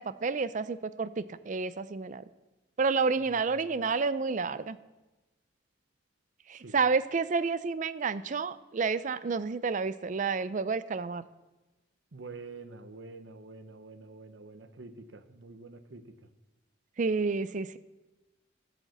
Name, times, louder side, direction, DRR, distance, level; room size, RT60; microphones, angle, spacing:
voice 1, 0.0-2.2 2.8-4.8 6.5-11.3 17.0-17.8, right 4 dB, 40° right, 15 dB, 0.4 m, -30 dB
voice 2, 3.2-3.7 6.5-6.8 12.1-16.3, right 3 dB, 70° right, 10 dB, 0.8 m, -47 dB
13.5 x 5.0 x 7.8 m, 1.1 s
head